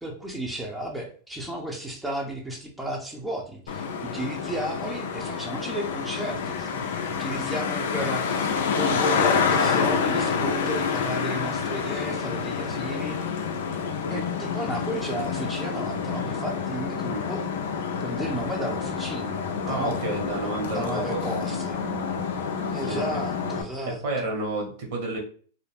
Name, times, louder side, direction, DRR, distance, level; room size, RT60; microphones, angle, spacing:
voice 1, 0.0-13.2 14.1-17.4 18.0-21.8 22.7-24.0, right 1 dB, 5° right, -1 dB, 0.6 m, -33 dB
Traffic noise roadway noise, 3.7-23.6, left 6 dB, 75° left, 0.4 m, -28 dB
voice 2, 19.7-21.2 22.9-23.2 23.9-25.2, right 2 dB, 65° right, 1 dB, 1.1 m, -30 dB
2.4 x 2.0 x 3.3 m, 0.43 s
hypercardioid pair, 115°, 0 cm